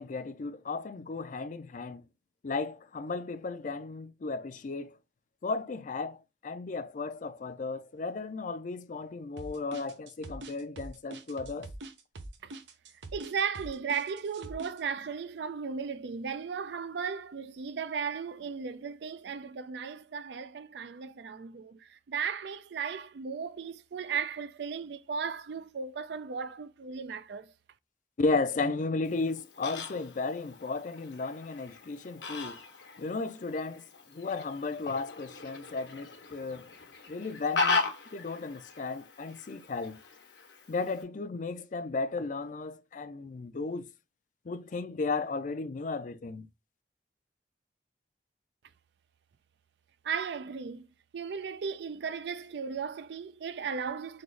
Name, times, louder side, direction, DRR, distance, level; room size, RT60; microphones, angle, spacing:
voice 1, 0.0-2.0 2.4-5.0 5.4-11.7 28.2-32.6 33.0-36.7 37.1-37.9 38.1-40.0 40.7-43.9 44.5-46.5, left 3 dB, 45° left, 0.4 m, -34 dB
sound 1, 9.4-14.8, right 2 dB, 85° right, 0.8 m, -44 dB
voice 2, 13.1-27.5 50.0-50.9 51.1-54.2, right 6 dB, 65° right, 0.4 m, -36 dB
Fowl, 29.0-41.0, left 4 dB, 85° left, 1.1 m, -38 dB
3.8 x 2.9 x 3.2 m
head